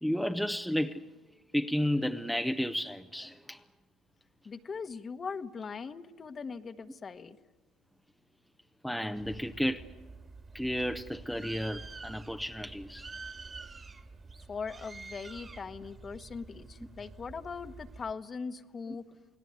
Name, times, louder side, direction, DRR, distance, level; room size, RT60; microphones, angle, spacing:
voice 1, 0.0-1.0 1.5-3.6 8.8-9.9 10.5-13.0 18.9-19.0, equal, ahead, 0.8 m, -32 dB
voice 2, 4.4-7.4 14.5-19.0, left 5 dB, 30° left, 1.2 m, -40 dB
Bird, 9.2-18.1, right 3 dB, 25° right, 2.1 m, -48 dB
29.0 x 19.0 x 9.5 m
supercardioid pair, 95°, 0 cm